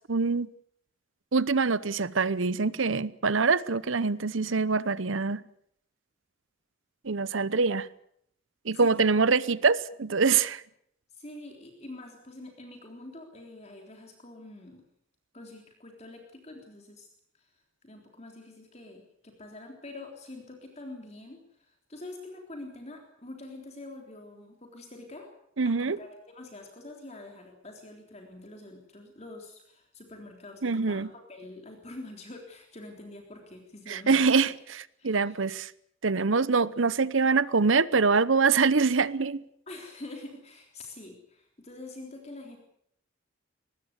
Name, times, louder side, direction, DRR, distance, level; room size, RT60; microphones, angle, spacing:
voice 1, 0.1-0.5 1.3-5.4 7.0-7.9 8.6-10.6 25.6-26.0 30.6-31.1 33.9-34.5 35.0-35.7 36.0-39.4, right 4 dB, 75° right, 0.9 m, -24 dB
voice 2, 8.7-9.1 11.1-14.8 15.3-17.1 17.3-17.5 17.8-25.3 25.7-34.5 35.0-35.4 39.7-42.6, left 2 dB, 35° left, 3.6 m, -45 dB
23.0 x 19.0 x 8.2 m
head